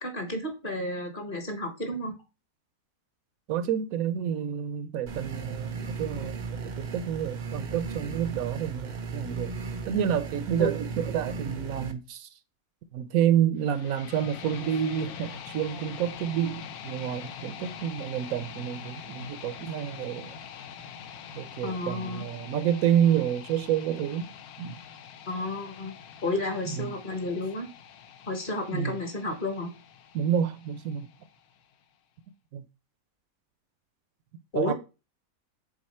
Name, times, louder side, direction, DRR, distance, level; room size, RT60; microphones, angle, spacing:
voice 1, 0.0-2.1 10.6-10.7 21.6-22.2 25.3-25.9 26.2-27.7 28.3-29.7 34.5-34.7, left 1 dB, 40° left, 1.3 m, -31 dB
voice 2, 3.5-6.4 6.8-9.5 9.9-12.3 12.9-20.4 21.3-24.3 24.6-24.7 26.8-26.9 27.3-27.4 28.7-29.0 30.1-31.1 32.5-32.6 34.6-34.7, right 9 dB, 75° right, 1.0 m, -29 dB
sound 1, 5.1-11.9, right 4 dB, 55° right, 0.5 m, -36 dB
sound 2, 13.6-31.6, left 7 dB, 90° left, 1.2 m, -44 dB
6.4 x 4.0 x 4.3 m
omnidirectional pair, 1.5 m